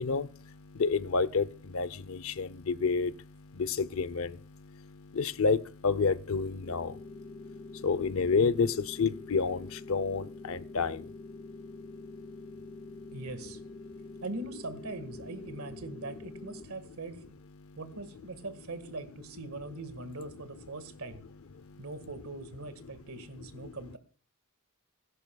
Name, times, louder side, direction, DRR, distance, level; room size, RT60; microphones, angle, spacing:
voice 1, 0.0-13.2 13.8-14.2 16.7-16.9 17.6-17.8 20.6-20.7 21.5-21.9 22.8-22.9 23.2-23.7, left 4 dB, 70° left, 0.6 m, -31 dB
sound 1, 6.6-16.6, left 3 dB, 25° left, 0.5 m, -46 dB
voice 2, 13.1-13.6 14.2-17.2 17.8-21.2 21.8-24.0, right 2 dB, 85° right, 1.7 m, -41 dB
21.5 x 11.0 x 2.3 m
head